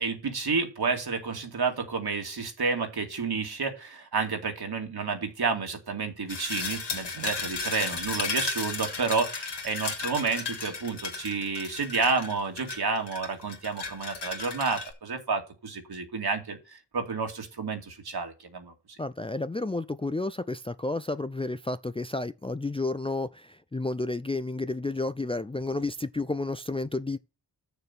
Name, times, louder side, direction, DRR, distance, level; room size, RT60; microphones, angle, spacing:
voice 1, 0.0-18.7, right 4 dB, 65° right, 2.4 m, -30 dB
sound 1, 6.3-14.9, left 4 dB, 75° left, 2.6 m, -34 dB
voice 2, 19.0-27.2, left 2 dB, 15° left, 0.5 m, -31 dB
6.9 x 6.7 x 5.9 m
cardioid pair, 50°, 42 cm